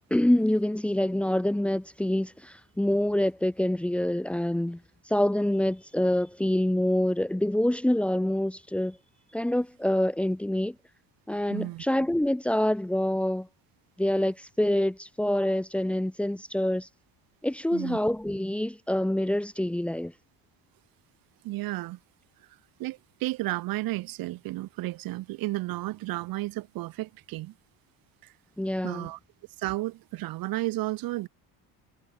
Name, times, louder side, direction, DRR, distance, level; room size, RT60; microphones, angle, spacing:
voice 1, 0.1-4.8 5.1-9.0 9.3-10.7 11.3-13.5 14.0-16.9 17.4-20.1 28.6-29.1, left 1 dB, 5° left, 2.5 m, -26 dB
voice 2, 11.5-11.8 17.7-18.0 21.4-22.0 22.8-27.5 28.2-28.3 28.8-29.2 29.6-31.3, right 18 dB, 65° right, 7.4 m, -32 dB
cardioid pair, 170°, 37 cm